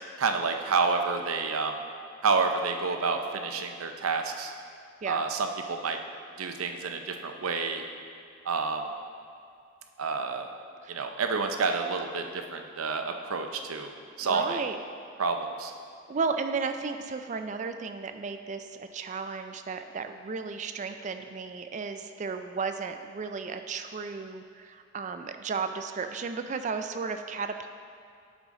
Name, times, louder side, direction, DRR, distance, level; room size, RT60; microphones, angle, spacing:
voice 1, 0.2-1.8 2.2-4.5 5.1-6.0 6.4-7.8 8.5-8.8 10.0-10.5 10.9-13.9 14.2-14.6 15.2-15.7, right 4 dB, 85° right, 5 dB, 0.6 m, -29 dB
voice 2, 14.2-14.8 16.1-27.7, right 5 dB, 35° right, 7 dB, 0.3 m, -34 dB
11.0 x 4.9 x 3.7 m, 2.4 s
head